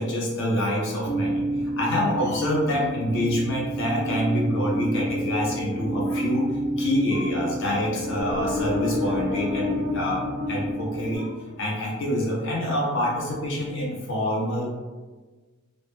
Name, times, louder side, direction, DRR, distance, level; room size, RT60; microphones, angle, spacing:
voice 1, 0.0-1.4 1.8-11.3 11.6-14.7, equal, 55° left, -3 dB, 0.4 m, -26 dB
sound 1, 1.0-11.2, right 1 dB, 80° right, 0.7 m, -29 dB
sound 2, 8.2-11.7, left 6 dB, 20° right, 0.3 m, -31 dB
2.0 x 2.0 x 3.0 m, 1.3 s
head